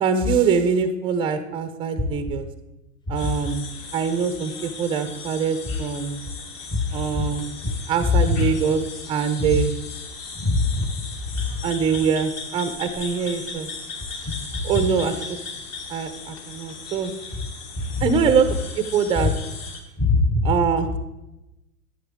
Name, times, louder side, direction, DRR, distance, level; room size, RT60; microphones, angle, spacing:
voice 1, 0.0-2.5 3.1-3.7 3.9-6.2 6.9-7.5 7.9-8.8 9.1-9.7 11.6-13.7 14.6-15.4 15.9-17.1 18.0-19.3 20.4-21.0, right 6 dB, 10° right, 10 dB, 0.6 m, -23 dB
sound 1, 3.1-19.8, left 4 dB, 35° left, 1.9 m, -37 dB
voice 2, 8.1-8.4 9.4-9.5 10.3-10.9 11.3-11.4 14.3-14.4 18.0-18.1 19.2-19.3 20.0-20.5, left 3 dB, 10° left, 6 dB, 0.9 m, -21 dB
11.0 x 9.1 x 3.6 m, 0.96 s
hypercardioid pair, 115°, 43 cm